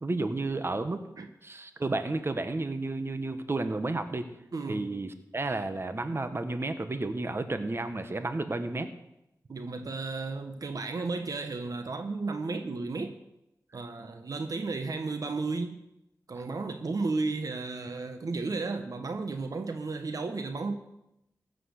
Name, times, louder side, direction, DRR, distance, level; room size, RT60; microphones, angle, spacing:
voice 1, 0.0-1.0 1.4-4.2 4.7-8.9, right 2 dB, 40° right, 9 dB, 1.3 m, -32 dB
voice 2, 4.5-4.8 9.5-13.2 13.7-15.8 16.3-20.8, right 3 dB, 65° right, 7 dB, 1.2 m, -33 dB
15.5 x 7.8 x 6.6 m, 0.86 s
cardioid pair, 50°, 7 cm